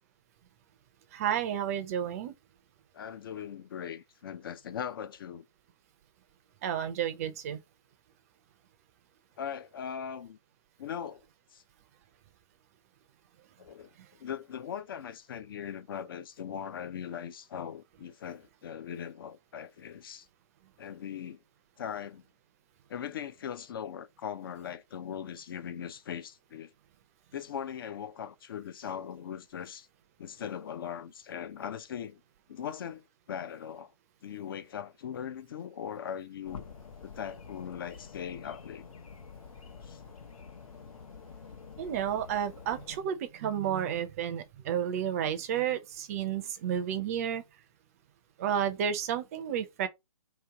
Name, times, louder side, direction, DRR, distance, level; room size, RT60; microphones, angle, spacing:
voice 1, 1.1-2.3 6.6-7.6 41.8-47.4 48.4-49.9, right 9 dB, 25° right, 0.5 m, -31 dB
voice 2, 2.9-5.4 9.4-10.4 10.8-11.2 11.5-11.6 13.6-13.9 14.2-20.3 20.8-21.4 21.8-22.2 22.9-26.7 27.3-29.9 30.2-32.2 32.5-33.9 34.2-36.7 37.0-38.8 39.8-40.0, left 8 dB, 40° left, 0.4 m, -40 dB
sound 1, 36.5-43.0, left 5 dB, 70° left, 0.9 m, -48 dB
3.1 x 3.0 x 4.6 m
hypercardioid pair, 150°, 18 cm